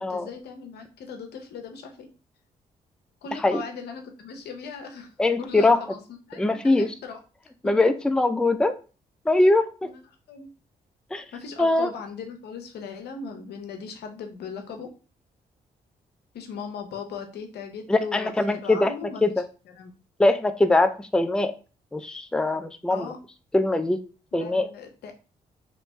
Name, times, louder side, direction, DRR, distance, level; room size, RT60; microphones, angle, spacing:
voice 1, 0.1-2.1 3.2-6.0 6.3-7.2 9.8-10.0 10.3-10.5 11.3-14.9 16.3-19.2 19.7-20.0 22.9-23.2 24.4-25.1, left 5 dB, 80° left, 4 dB, 0.8 m, -38 dB
voice 2, 5.2-5.8 6.4-6.9 7.6-8.7 9.3-9.9 11.1-11.2 11.6-11.9 17.9-18.9 19.2-19.3 20.2-21.5 21.9-23.1 23.5-24.0 24.3-24.7, left 2 dB, 5° left, 8 dB, 0.4 m, -22 dB
3.2 x 3.0 x 3.1 m, 0.34 s
supercardioid pair, 55°, 17 cm